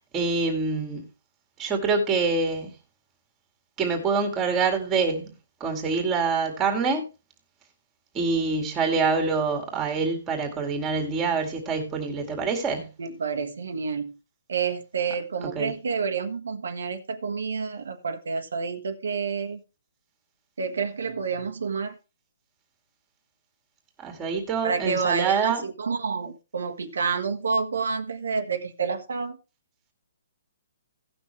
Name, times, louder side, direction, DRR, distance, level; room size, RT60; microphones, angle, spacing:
voice 1, 0.1-1.0 1.6-2.7 3.8-5.3 5.6-7.0 8.1-12.9 15.5-15.7 24.0-25.6, right 4 dB, 15° right, 2.3 m, -25 dB
voice 2, 13.0-14.2 14.5-19.6 20.6-22.0 24.6-29.4, right 5 dB, 80° right, 1.4 m, -29 dB
17.0 x 6.1 x 3.2 m
hypercardioid pair, 160°, 0 cm